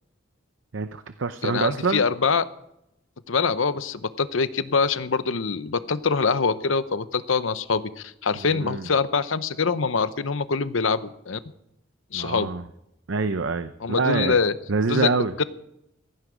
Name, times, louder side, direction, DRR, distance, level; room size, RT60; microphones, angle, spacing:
voice 1, 0.7-2.0 8.4-8.9 12.1-12.6 13.1-14.4 14.7-15.3, right 4 dB, 70° right, 11 dB, 0.7 m, -26 dB
voice 2, 1.4-2.5 3.3-11.4 12.1-12.5 13.8-14.5 14.9-15.1 15.4-15.5, left 5 dB, 80° left, 14 dB, 0.8 m, -24 dB
16.0 x 15.5 x 5.1 m, 0.81 s
head